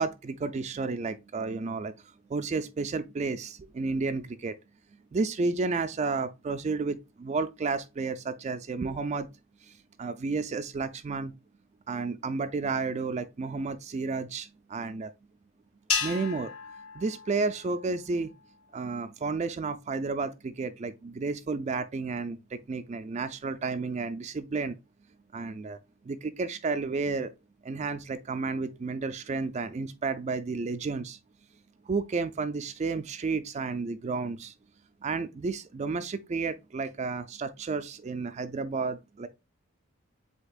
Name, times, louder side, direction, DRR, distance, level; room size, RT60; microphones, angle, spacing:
voice 1, 0.0-4.5 5.1-9.3 9.6-11.3 11.9-15.1 16.0-16.5 16.9-18.3 18.7-24.8 25.3-25.8 26.0-27.3 27.6-31.2 31.8-34.5 35.0-39.3, right 4 dB, 30° right, 0.3 m, -32 dB
sound 1, 15.9-18.3, left 6 dB, 75° left, 1.2 m, -34 dB
7.8 x 2.8 x 2.4 m
head